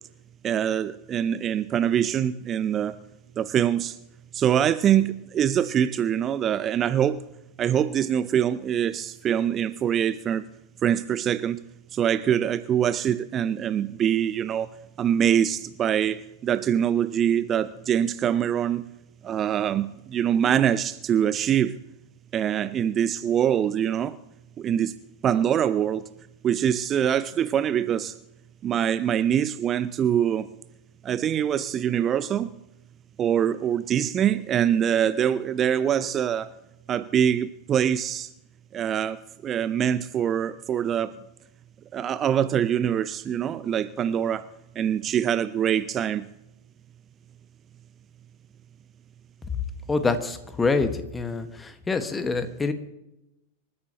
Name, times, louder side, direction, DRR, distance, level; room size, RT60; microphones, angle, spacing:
voice 1, 0.4-3.0 3.4-4.0 4.3-7.2 7.6-10.4 10.8-11.6 11.9-18.8 19.2-21.8 22.3-24.2 24.6-25.0 25.2-26.0 26.4-28.1 28.6-30.5 31.0-32.5 33.2-36.5 36.9-38.3 38.7-41.1 41.9-44.5 44.8-46.3, right 9 dB, 25° right, 16 dB, 0.5 m, -24 dB
voice 2, 49.9-52.7, left 4 dB, 15° left, 9 dB, 1.5 m, -26 dB
26.5 x 14.0 x 3.0 m, 0.91 s
figure-of-eight pair, 90°, 0 cm